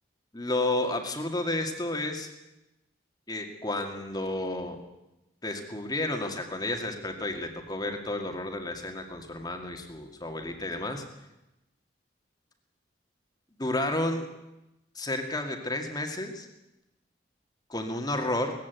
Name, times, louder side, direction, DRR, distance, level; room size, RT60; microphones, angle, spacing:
voice 1, 0.3-2.3 3.3-4.8 5.4-11.0 13.6-14.3 15.0-16.5 17.7-18.5, left 2 dB, 20° left, 5 dB, 2.1 m, -31 dB
19.0 x 15.5 x 9.3 m, 0.95 s
head